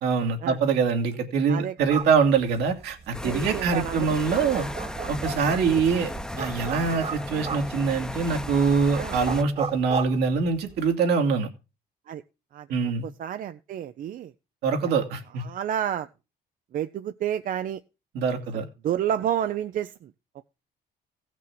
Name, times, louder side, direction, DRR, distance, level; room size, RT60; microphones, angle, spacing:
voice 1, 0.0-4.7 5.1-6.1 6.4-11.5 12.7-13.1 14.6-15.4 18.1-18.7, right 5 dB, 75° right, 4 dB, 2.4 m, -24 dB
sound 1, 1.8-10.9, right 5 dB, 40° right, 1.6 m, -37 dB
sound 2, 3.1-9.4, left 1 dB, 5° left, 0.9 m, -35 dB
voice 2, 3.2-4.1 8.9-9.2 12.1-12.2 12.5-14.3 15.4-16.1 16.7-17.8 18.5-20.1, right 10 dB, 55° right, 11 dB, 0.6 m, -30 dB
15.5 x 6.1 x 6.0 m, 0.31 s
cardioid pair, 110°, 17 cm